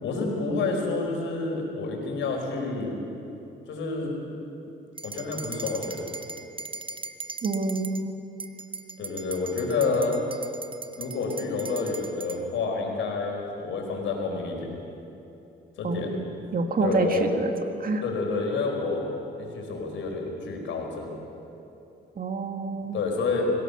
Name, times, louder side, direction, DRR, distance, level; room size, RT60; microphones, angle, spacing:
voice 1, 0.0-3.0 3.7-4.2 5.0-6.0 9.0-10.2 11.0-14.7 15.8-16.1 16.8-17.4 18.0-19.1 19.4-21.1 22.9-23.4, left 4 dB, 75° left, 1 dB, 4.7 m, -29 dB
sound 1, 5.0-8.0 8.4-12.4, right 4 dB, 25° right, 1.1 m, -39 dB
voice 2, 7.4-8.1 15.8-16.3 16.5-17.5 17.8-18.0 22.2-23.0, right 3 dB, 45° right, 5 dB, 1.9 m, -27 dB
24.5 x 17.0 x 6.9 m, 2.9 s
cardioid pair, 90°, 20 cm